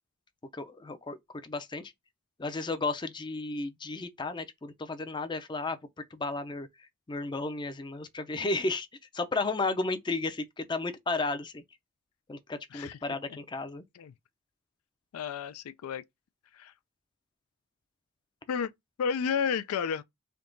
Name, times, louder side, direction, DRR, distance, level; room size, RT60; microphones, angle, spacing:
voice 1, 0.5-1.9 2.4-5.8 6.1-8.9 9.1-11.6 12.3-13.8, left 3 dB, 20° left, 0.4 m, -33 dB
voice 2, 15.1-16.0 16.5-16.7 18.5-18.7 19.0-20.0, left 6 dB, 85° left, 0.4 m, -31 dB
3.5 x 2.8 x 3.8 m
head